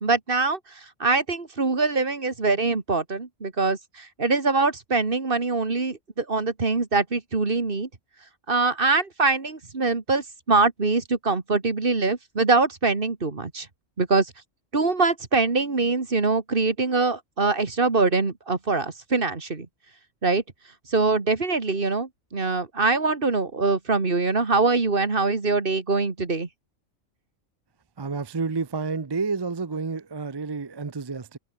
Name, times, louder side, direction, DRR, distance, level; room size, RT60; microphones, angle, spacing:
voice 1, 0.0-7.9 8.5-13.7 14.0-14.3 14.7-19.7 20.2-20.4 20.9-26.5, right 3 dB, 45° right, 2.2 m, -23 dB
voice 2, 28.0-31.4, right 4 dB, 25° right, 0.5 m, -30 dB
omnidirectional pair, 1.3 m